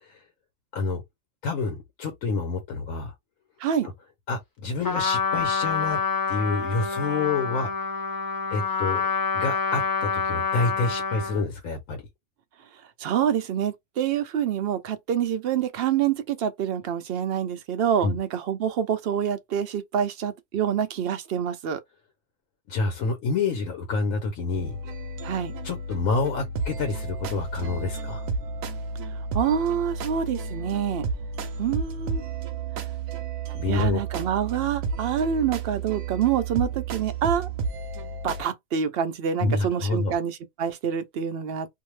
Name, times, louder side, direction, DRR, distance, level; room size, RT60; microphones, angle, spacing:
voice 1, 1.4-3.1 4.3-6.0 6.3-7.7 8.5-9.1 9.3-12.0 18.0-18.2 22.7-24.8 25.6-28.3 33.5-34.0 39.4-40.2, left 4 dB, 80° left, 1.2 m, -28 dB
Trumpet, 4.8-11.4, left 5 dB, 35° left, 0.3 m, -27 dB
voice 2, 13.0-21.8 25.2-25.5 29.3-31.1 31.6-32.2 33.7-37.5 38.2-41.7, right 8 dB, 65° right, 0.6 m, -26 dB
sound 1, 24.5-38.4, right 4 dB, 90° right, 1.0 m, -32 dB
2.7 x 2.0 x 3.1 m
omnidirectional pair, 1.4 m